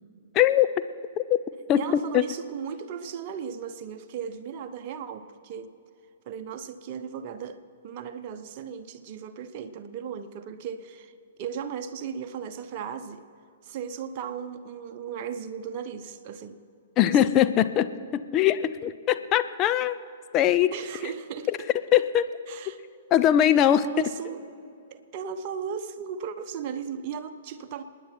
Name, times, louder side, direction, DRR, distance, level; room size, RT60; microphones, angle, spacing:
voice 1, 0.3-0.7 1.2-1.4 1.7-2.3 17.0-20.0 20.3-20.7 21.9-22.3 22.7-22.8 23.1-23.8, left 11 dB, 30° left, 11 dB, 0.6 m, -21 dB
voice 2, 1.7-5.7 6.2-11.1 11.4-13.2 13.6-16.6 17.1-17.3 20.7-21.7 22.5-22.8 23.5-24.4 24.9-27.8, right 7 dB, 40° right, 8 dB, 1.0 m, -36 dB
27.5 x 10.0 x 4.5 m, 2.6 s
figure-of-eight pair, 115°, 0 cm